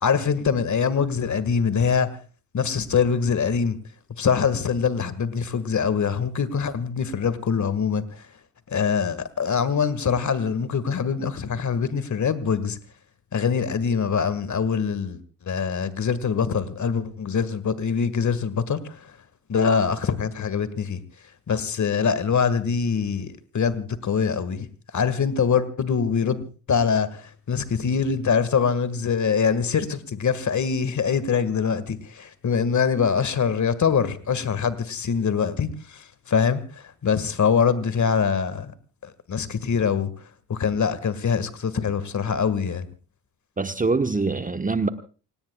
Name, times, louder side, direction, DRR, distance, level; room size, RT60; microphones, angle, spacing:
voice 1, 0.0-2.2 2.5-3.8 4.2-8.3 8.7-12.8 13.3-19.1 19.5-21.0 21.5-24.7 24.9-26.4 26.7-38.7 39.0-40.1 40.5-42.9, left 6 dB, 40° left, 1.9 m, -24 dB
voice 2, 43.6-44.9, right 3 dB, 15° right, 1.2 m, -24 dB
29.0 x 18.0 x 2.4 m
hypercardioid pair, 55°, 47 cm